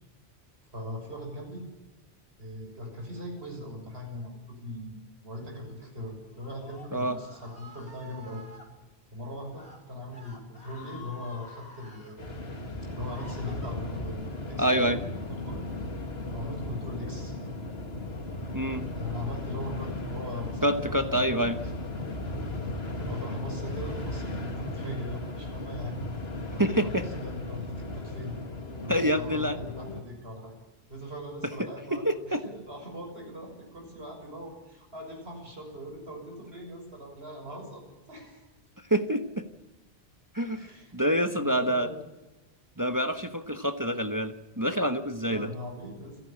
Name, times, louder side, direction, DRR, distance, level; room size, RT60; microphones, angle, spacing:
voice 1, 0.7-1.6 2.4-5.0 5.2-8.4 9.1-12.3 12.9-15.7 16.3-17.3 18.9-21.2 22.9-26.0 26.5-28.3 28.8-30.5 30.9-38.5 40.5-42.0 45.2-46.2, left 1 dB, 70° right, 1 dB, 7.0 m, -40 dB
Screaming, 6.3-8.7 9.4-9.8 10.1-12.2 12.7-14.1, left 2 dB, 85° left, 5.1 m, -49 dB
sound 1, 12.2-30.0, left 2 dB, 70° left, 2.5 m, -36 dB
voice 2, 14.6-15.0 18.5-18.8 20.6-21.6 26.6-27.0 28.9-29.6 31.6-32.4 38.9-39.4 40.3-40.7 40.9-41.9 42.8-45.5, equal, 20° right, 8 dB, 1.0 m, -27 dB
28.5 x 11.5 x 8.5 m, 1.1 s
omnidirectional pair, 1.1 m